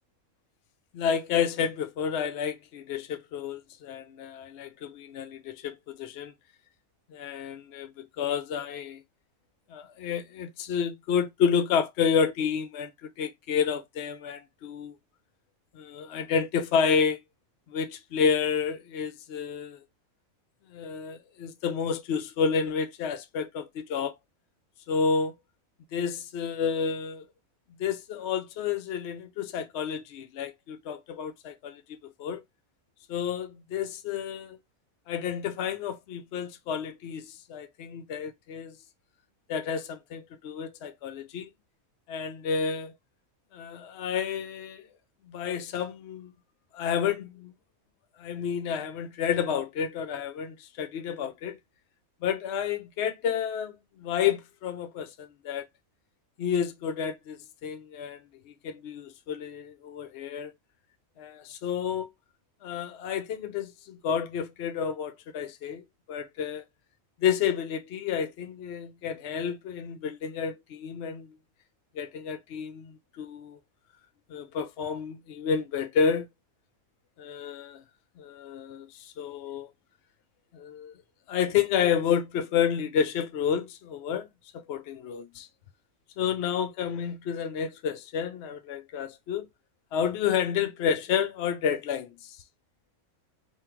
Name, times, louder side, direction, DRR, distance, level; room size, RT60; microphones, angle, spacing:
voice 1, 0.9-6.3 7.1-9.0 9.7-14.9 15.7-17.2 17.7-19.8 20.7-24.2 24.9-25.3 25.9-27.3 27.8-32.4 33.1-34.6 35.1-38.7 39.5-41.5 42.1-42.9 43.5-44.9 45.3-46.3 46.7-47.5 48.2-51.6 52.2-55.6 56.4-58.2 58.6-60.5 61.2-62.1 62.6-66.6 67.2-71.3 71.9-73.6 74.3-76.3 77.2-77.8 78.2-79.7 80.5-80.9 81.3-84.3 84.5-85.5 86.2-89.5 89.9-92.4, left 7 dB, 65° left, 0.7 m, -30 dB
3.7 x 2.4 x 4.3 m
omnidirectional pair, 1.5 m